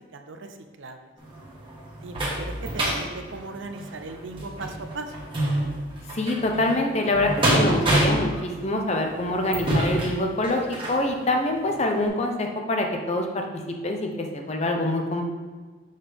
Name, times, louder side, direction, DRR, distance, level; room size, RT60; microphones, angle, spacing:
voice 1, 0.1-1.1 2.0-5.1, right 3 dB, 65° right, 6 dB, 0.6 m, -38 dB
sound 1, 1.2-11.0 11.6-11.7 12.1-12.2, right 1 dB, 25° right, 1.3 m, -27 dB
voice 2, 6.1-15.2, left 1 dB, 30° left, 2 dB, 0.7 m, -25 dB
6.5 x 5.8 x 3.5 m, 1.4 s
head